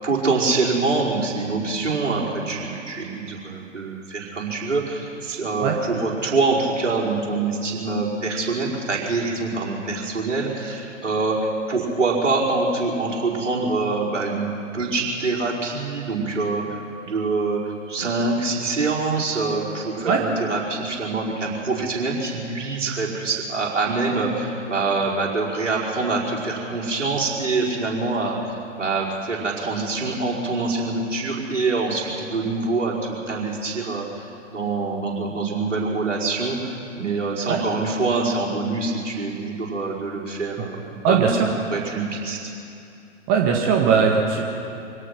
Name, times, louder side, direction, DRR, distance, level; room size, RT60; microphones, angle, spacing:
voice 1, 0.0-14.5 14.7-17.6 17.9-41.3 41.7-42.4, right 3 dB, 70° right, -3 dB, 5.2 m, -25 dB
voice 2, 41.0-41.4 43.3-44.4, right 6 dB, 30° right, 0 dB, 1.8 m, -19 dB
25.0 x 17.5 x 6.1 m, 2.7 s
figure-of-eight pair, 120°, 38 cm